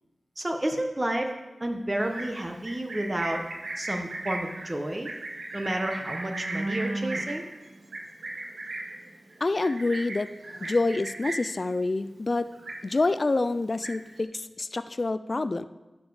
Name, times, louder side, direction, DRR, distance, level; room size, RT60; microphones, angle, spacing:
voice 1, 0.4-1.3 1.6-3.4 3.8-5.1 5.5-7.5, right 1 dB, 25° right, 4 dB, 1.1 m, -30 dB
Livestock farm animals working animals, 2.0-11.6 11.9-12.3 12.5-13.2 13.5-14.2, right 2 dB, 85° right, 1.3 m, -36 dB
voice 2, 9.4-10.3 10.6-12.5 12.8-15.7, left 3 dB, 50° left, 13 dB, 0.3 m, -27 dB
11.5 x 5.2 x 4.9 m, 1.1 s
cardioid pair, 45°, 0 cm